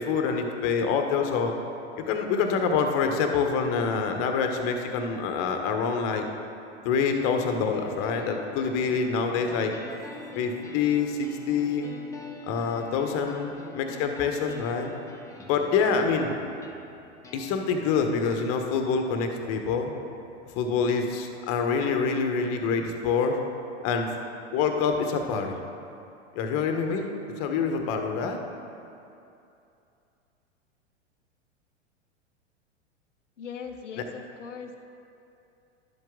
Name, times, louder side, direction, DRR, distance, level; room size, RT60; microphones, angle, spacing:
voice 1, 0.0-1.5 2.0-6.2 6.8-9.7 10.3-11.9 12.5-14.9 15.4-16.3 17.3-19.9 20.5-23.4 23.8-24.1 24.5-25.5 26.3-27.1 27.4-28.4, left 5 dB, 40° left, 5 dB, 1.1 m, -26 dB
sound 1, 7.1-21.1, left 3 dB, 10° left, 0.8 m, -46 dB
voice 2, 33.4-34.8, left 6 dB, 85° left, 5 dB, 0.6 m, -39 dB
11.5 x 7.5 x 3.7 m, 2.7 s
hypercardioid pair, 95°, 36 cm